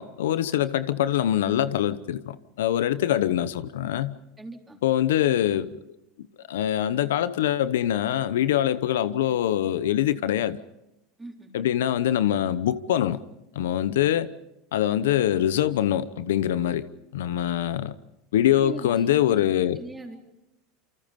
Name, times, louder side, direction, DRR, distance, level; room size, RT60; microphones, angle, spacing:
voice 1, 0.0-4.2 4.8-5.7 6.5-10.6 11.5-13.2 13.5-14.3 14.7-16.8 17.1-17.9 18.3-19.8, left 11 dB, 90° left, 0.9 m, -24 dB
voice 2, 4.4-4.8 11.2-11.5 18.6-19.4 19.8-20.2, right 2 dB, 10° right, 4.1 m, -39 dB
28.0 x 25.5 x 5.3 m
supercardioid pair, 115°, 0 cm